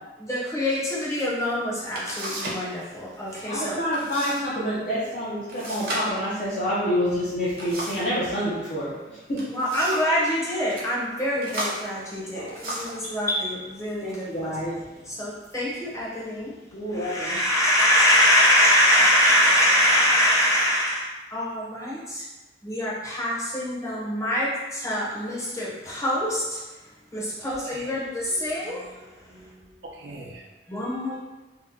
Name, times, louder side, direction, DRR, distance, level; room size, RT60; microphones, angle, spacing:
voice 1, 0.2-3.8 9.5-14.6 15.1-16.5 16.9-22.2 22.6-26.6 27.1-29.0 30.7-31.1, equal, 15° left, 0.8 m, -24 dB
sound 1, 1.9-2.7 2.9-3.4 3.9-4.4 4.7-4.8 5.5-8.2 9.1-10.2 10.6-10.9 11.4-13.0 13.8-14.0 14.5-15.0, right 1 dB, 55° right, 0.8 m, -34 dB
voice 2, 3.5-9.5 12.3-12.6 14.0-14.8 16.7-17.4, equal, 45° left, 0.6 m, -28 dB
voice 3, 28.3-28.9 29.3-30.4 30.8-31.1, right 2 dB, 85° right, 0.5 m, -44 dB
2.7 x 2.2 x 3.7 m
head